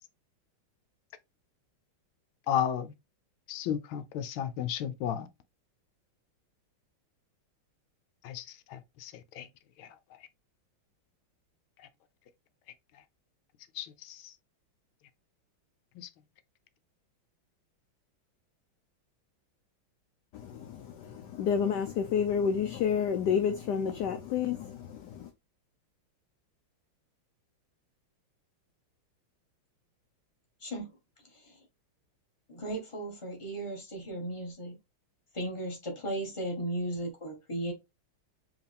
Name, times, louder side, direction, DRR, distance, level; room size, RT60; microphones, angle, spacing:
voice 1, 2.5-2.9 3.5-5.3 8.2-9.5 9.8-10.0 11.8-11.9 12.9-13.0 13.7-14.3 15.9-16.1, left 9 dB, 90° left, 1.4 m, -34 dB
voice 2, 20.3-25.3, left 7 dB, 70° left, 1.1 m, -30 dB
voice 3, 30.6-31.7 32.5-34.8 35.3-37.7, right 1 dB, 15° left, 1.4 m, -36 dB
4.7 x 3.3 x 3.4 m
omnidirectional pair, 2.2 m